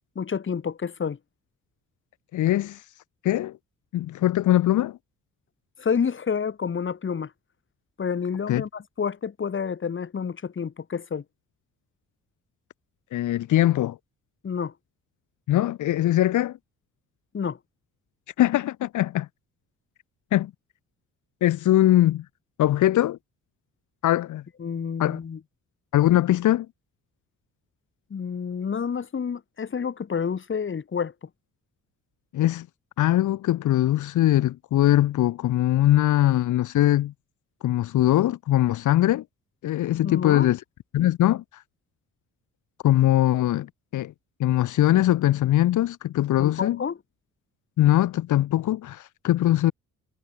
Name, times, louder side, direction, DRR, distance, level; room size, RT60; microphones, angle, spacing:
voice 1, 0.1-1.2 5.8-7.3 8.0-11.2 14.4-14.7 17.3-17.6 24.6-25.4 28.1-31.1 39.9-40.5 46.4-47.0, left 6 dB, 40° left, 3.4 m, -29 dB
voice 2, 2.3-2.8 3.2-3.6 3.9-5.0 8.5-8.6 13.1-14.0 15.5-16.6 18.4-19.3 20.3-20.5 21.4-22.2 22.6-23.2 24.0-24.4 25.0-25.2 25.9-26.7 32.3-32.7 33.0-37.1 37.6-39.2 39.6-40.6 40.9-41.4 42.8-44.1 44.4-46.8 47.8-49.7, left 13 dB, 80° left, 2.2 m, -21 dB
cardioid pair, 90°, 30 cm